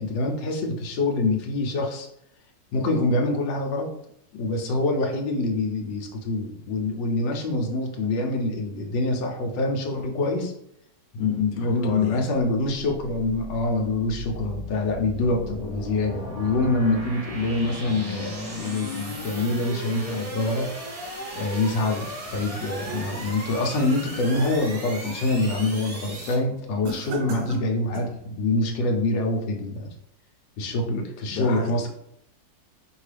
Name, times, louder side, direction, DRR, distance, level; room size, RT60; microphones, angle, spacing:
voice 1, 0.0-2.1 2.7-3.9 4.3-10.5 11.1-20.7 21.3-29.9 30.6-31.9, left 2 dB, 90° left, 2 dB, 1.4 m, -25 dB
voice 2, 11.2-12.2 26.8-27.0 31.3-31.9, left 4 dB, 65° left, 2 dB, 1.2 m, -34 dB
sound 1, 12.8-26.3, equal, 35° right, 0.6 m, -36 dB
sound 2, 22.3-23.4 23.9-25.2 25.6-26.0 26.8-28.2, right 3 dB, 60° right, 1.0 m, -38 dB
4.6 x 3.2 x 3.3 m, 0.74 s
omnidirectional pair, 1.9 m